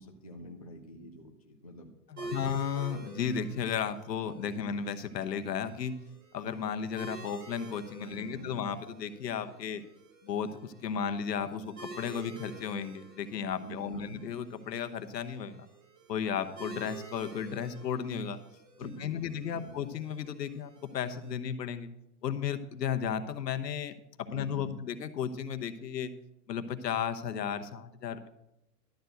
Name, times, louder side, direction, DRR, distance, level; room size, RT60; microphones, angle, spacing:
voice 1, 0.0-1.9 2.2-2.5 8.0-8.6 13.6-14.2 18.8-19.7 24.3-24.9, equal, 25° left, 1 dB, 0.3 m, -46 dB
voice 2, 2.1-6.0 6.3-9.8 10.2-15.7 16.1-18.4 18.8-21.9 22.2-23.9 24.2-26.1 26.5-28.3, left 7 dB, 80° left, 10 dB, 1.1 m, -34 dB
sound 1, 2.2-21.3, right 3 dB, 55° right, 3.6 m, -49 dB
12.0 x 4.6 x 7.9 m, 0.87 s
hypercardioid pair, 150°, 49 cm